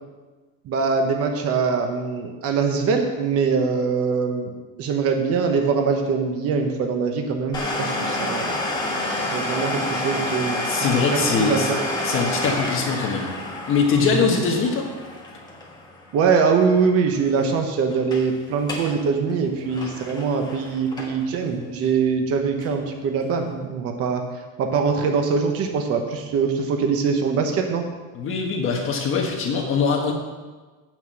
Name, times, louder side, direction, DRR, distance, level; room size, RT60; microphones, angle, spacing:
voice 1, 0.7-4.5 4.8-8.6 9.1-10.6 11.1-11.8 14.0-14.3 16.1-24.2 24.6-27.8, right 5 dB, 45° right, 3 dB, 1.0 m, -23 dB
Domestic sounds home sounds, 7.5-17.0 17.2-17.3 17.9-18.3 18.6-19.0 19.3-21.4 21.8-21.9 22.6-22.7, left 1 dB, 10° left, 1.4 m, -28 dB
voice 2, 10.6-11.7 12.0-13.3 13.7-14.9 28.1-30.1, left 5 dB, 40° left, 1 dB, 1.3 m, -22 dB
7.9 x 6.1 x 7.6 m, 1.3 s
cardioid pair, 165°, 33 cm